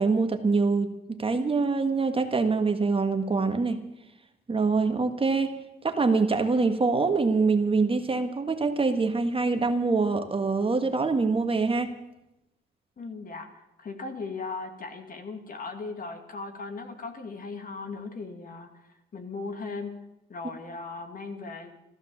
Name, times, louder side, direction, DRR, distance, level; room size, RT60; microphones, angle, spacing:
voice 1, 0.0-3.8 4.5-5.6 5.8-11.9, right 4 dB, 25° right, 6 dB, 1.6 m, -24 dB
voice 2, 13.0-13.5 13.8-18.7 19.1-20.0 20.3-21.8, left 4 dB, 45° left, 5 dB, 2.5 m, -37 dB
14.5 x 13.5 x 7.3 m, 0.90 s
cardioid pair, 90°, 20 cm